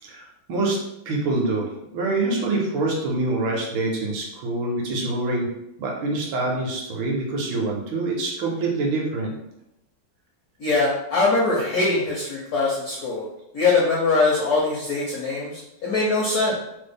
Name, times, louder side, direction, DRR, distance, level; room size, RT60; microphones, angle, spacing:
voice 1, 0.0-0.8 1.1-5.5 5.8-9.4, right 2 dB, 75° right, -1 dB, 1.4 m, -25 dB
voice 2, 10.6-13.2 13.5-16.6, left 3 dB, 75° left, -5 dB, 0.8 m, -22 dB
3.6 x 2.1 x 3.4 m, 0.85 s
omnidirectional pair, 2.3 m